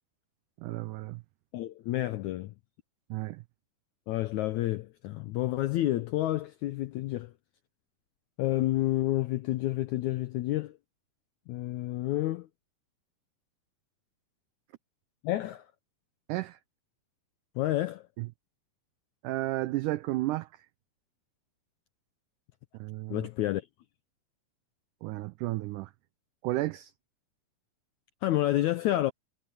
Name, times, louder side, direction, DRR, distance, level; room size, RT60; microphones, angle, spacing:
voice 1, 0.6-1.2 3.1-3.4 16.3-16.6 18.2-18.3 19.2-20.5 22.8-23.3 25.0-25.9 26.4-26.9, right 17 dB, 85° right, 1.8 m, -32 dB
voice 2, 1.5-2.5 4.1-7.3 8.4-10.8 11.5-12.5 15.2-15.7 17.5-18.0 23.1-23.7 28.2-29.1, left 15 dB, 85° left, 1.6 m, -29 dB
omnidirectional pair, 4.3 m